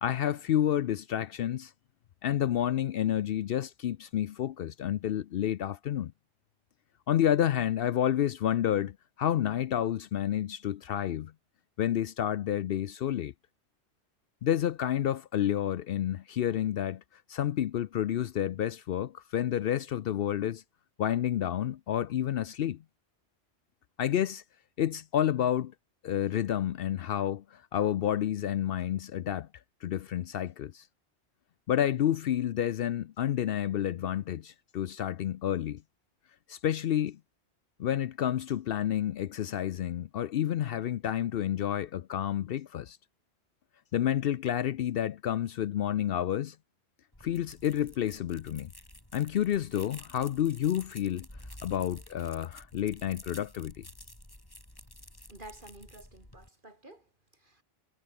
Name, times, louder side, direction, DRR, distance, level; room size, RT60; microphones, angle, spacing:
voice 1, 0.0-1.7 2.2-6.1 7.1-11.3 11.8-13.3 14.4-17.0 17.3-20.6 21.0-22.8 24.0-24.4 24.8-25.7 26.0-29.5 29.8-30.8 31.7-35.8 36.5-37.2 37.8-43.0 43.9-46.6 47.2-48.7 49.1-51.3 51.6-53.8, left 10 dB, 65° left, 0.7 m, -29 dB
sound 1, 47.1-56.5, left 1 dB, 20° left, 4.2 m, -51 dB
voice 2, 55.3-57.6, right 2 dB, 50° right, 4.6 m, -51 dB
omnidirectional pair, 1.1 m